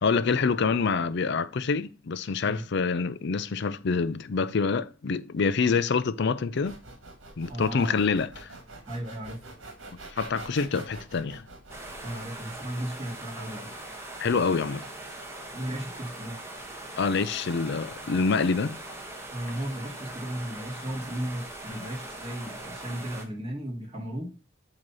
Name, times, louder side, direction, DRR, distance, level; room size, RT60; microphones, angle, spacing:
voice 1, 0.0-6.7 7.4-8.5 10.2-11.4 14.2-14.8 17.0-18.8, left 5 dB, 60° left, 0.5 m, -26 dB
sound 1, 6.6-12.2, right 2 dB, 80° right, 1.6 m, -45 dB
voice 2, 7.5-8.0 8.9-9.4 12.0-13.7 15.5-16.4 19.3-24.3, right 1 dB, 30° right, 1.9 m, -35 dB
sound 2, 11.7-23.2, right 1 dB, 15° right, 1.1 m, -41 dB
7.9 x 2.9 x 5.4 m
head